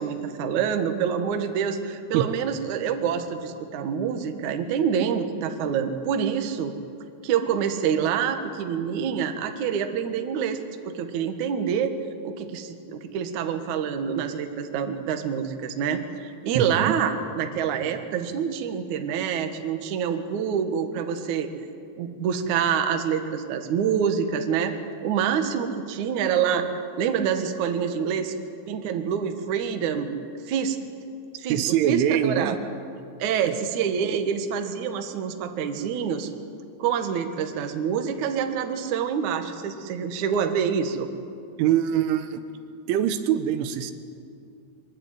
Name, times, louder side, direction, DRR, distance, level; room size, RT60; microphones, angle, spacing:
voice 1, 0.0-6.8 7.2-10.6 10.9-11.9 12.2-21.5 22.0-24.7 25.0-28.3 28.7-30.1 30.5-30.8 31.4-31.6 31.9-32.5 33.2-36.3 36.8-41.1, right 7 dB, 60° right, 6 dB, 2.1 m, -26 dB
voice 2, 16.6-17.0 31.5-32.6 33.5-33.6 41.6-42.4 42.9-43.9, right 10 dB, 85° right, 10 dB, 3.6 m, -23 dB
23.0 x 22.5 x 9.2 m, 2.4 s
omnidirectional pair, 5.4 m